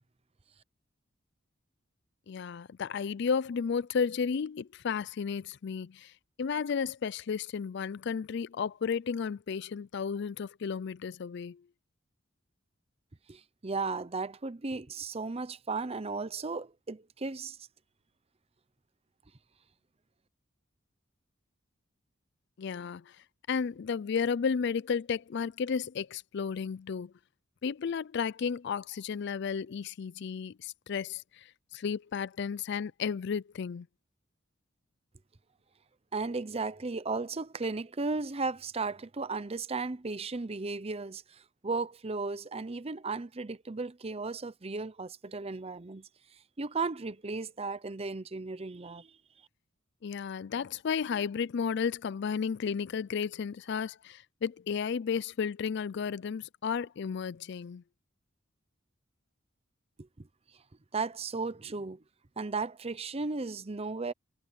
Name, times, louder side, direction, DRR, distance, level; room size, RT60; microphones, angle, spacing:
voice 1, 2.3-6.1 6.4-11.6 22.6-23.2 23.5-27.1 27.6-33.9 50.0-57.8, left 6 dB, 60° left, 0.4 m, -33 dB
voice 2, 13.3-17.6 36.1-49.2 60.0-60.3 60.9-62.0 62.4-64.1, right 3 dB, 30° right, 0.7 m, -35 dB
head